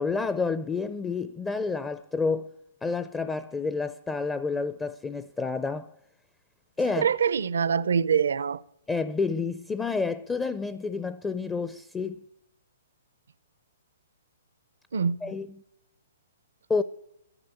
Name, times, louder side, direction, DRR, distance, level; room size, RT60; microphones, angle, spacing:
voice 1, 0.0-2.5 2.8-5.9 6.8-7.1 8.9-12.2 15.2-15.5 16.7-16.8, left 4 dB, 10° left, 0.4 m, -29 dB
voice 2, 6.9-8.6 14.9-15.3, right 7 dB, 75° right, 0.6 m, -25 dB
12.0 x 11.0 x 8.4 m
hypercardioid pair, 145°, 0 cm